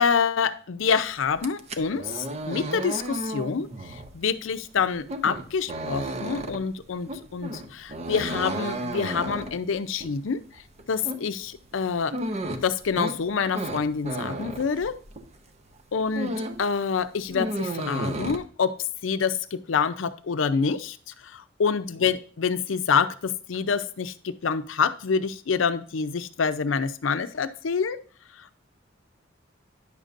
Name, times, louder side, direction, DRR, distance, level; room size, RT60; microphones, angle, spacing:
voice 1, 0.0-10.4 10.9-12.2 12.6-15.0 15.9-18.7 19.0-21.0 21.2-28.0 28.4-28.6, left 6 dB, 85° left, 12 dB, 0.5 m, -27 dB
sound 1, 1.3-15.4 15.7-16.7 17.0-18.4, right 1 dB, 35° right, 0.6 m, -33 dB
9.7 x 6.6 x 2.5 m, 0.41 s
head